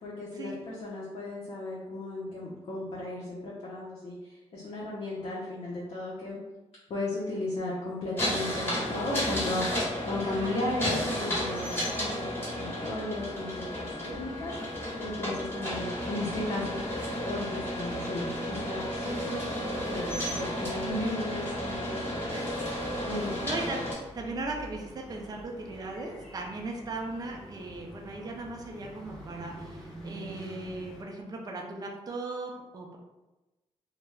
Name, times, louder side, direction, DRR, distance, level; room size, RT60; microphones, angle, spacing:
voice 1, 0.0-6.4 6.9-22.3 23.0-23.3, left 2 dB, 55° left, -6 dB, 0.6 m, -35 dB
sound 1, 8.2-23.9, equal, 20° left, 1.2 m, -33 dB
voice 2, 10.2-10.7 21.0-21.2 22.3-22.5 23.1-33.0, right 2 dB, 35° right, 1 dB, 0.4 m, -38 dB
sound 2, 13.1-31.0, right 1 dB, 5° left, 0.8 m, -48 dB
2.2 x 2.0 x 3.3 m, 1.1 s
wide cardioid pair, 120°, 12 cm